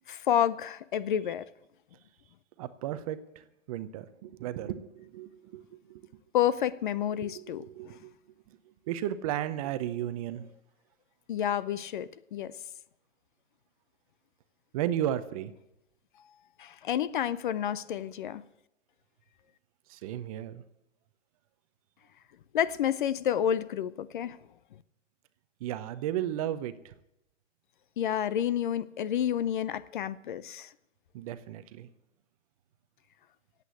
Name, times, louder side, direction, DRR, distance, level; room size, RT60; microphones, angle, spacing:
voice 1, 0.1-1.5 6.3-8.0 11.3-12.6 16.6-18.4 22.5-24.4 28.0-30.7, left 10 dB, 45° left, 0.6 m, -29 dB
voice 2, 2.6-3.2 3.7-6.0 7.2-8.1 8.9-10.5 14.7-15.5 19.9-20.6 25.6-26.9 31.1-31.9, right 11 dB, 30° right, 0.7 m, -34 dB
16.5 x 8.4 x 7.9 m
hypercardioid pair, 140°, 37 cm